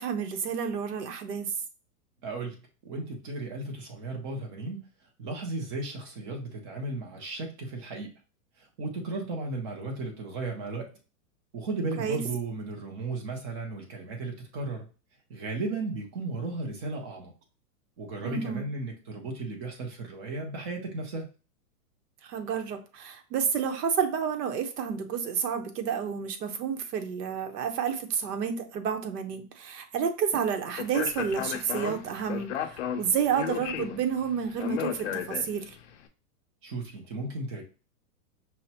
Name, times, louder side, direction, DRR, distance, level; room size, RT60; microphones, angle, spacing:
voice 1, 0.0-1.5 12.0-12.2 18.2-18.6 22.2-35.8, right 7 dB, 75° right, 6 dB, 0.9 m, -30 dB
voice 2, 2.2-4.8 5.2-8.1 8.6-10.9 11.5-14.9 15.3-17.3 18.0-21.3 36.6-37.6, right 3 dB, 20° right, 2 dB, 0.5 m, -35 dB
Speech, 30.8-35.8, left 9 dB, 50° left, 0.5 m, -34 dB
5.6 x 2.1 x 2.8 m, 0.34 s
supercardioid pair, 155°, 48 cm